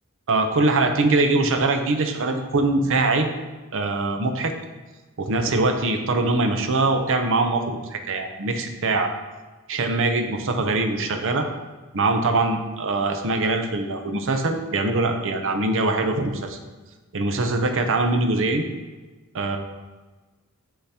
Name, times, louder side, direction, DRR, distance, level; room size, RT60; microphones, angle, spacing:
voice 1, 0.3-3.3 3.7-4.5 5.2-9.1 9.7-11.5 11.9-16.6 17.1-18.7 19.3-19.6, right 2 dB, 60° right, 5 dB, 0.7 m, -22 dB
10.0 x 3.8 x 2.8 m, 1.3 s
head